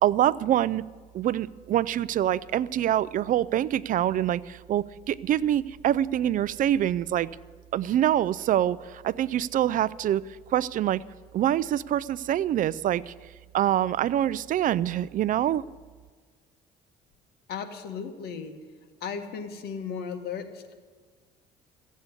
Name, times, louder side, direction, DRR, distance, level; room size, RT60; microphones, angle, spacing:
voice 1, 0.0-0.8 1.1-7.3 7.7-10.2 10.5-11.0 11.3-13.1 13.5-15.6, right 11 dB, 50° right, 20 dB, 0.4 m, -25 dB
voice 2, 17.5-18.6 19.0-20.7, left 6 dB, 70° left, 6 dB, 1.7 m, -35 dB
15.5 x 8.3 x 9.6 m, 1.5 s
cardioid pair, 110°, 17 cm